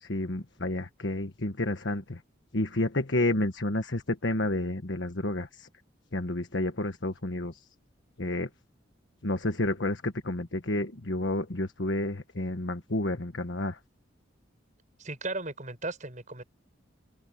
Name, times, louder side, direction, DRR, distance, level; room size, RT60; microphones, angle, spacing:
voice 1, 0.0-2.2 2.5-5.7 6.1-7.6 8.2-8.5 9.2-13.8, left 1 dB, 65° left, 1.5 m, -30 dB
voice 2, 15.0-16.4, right 2 dB, 40° right, 7.4 m, -36 dB
head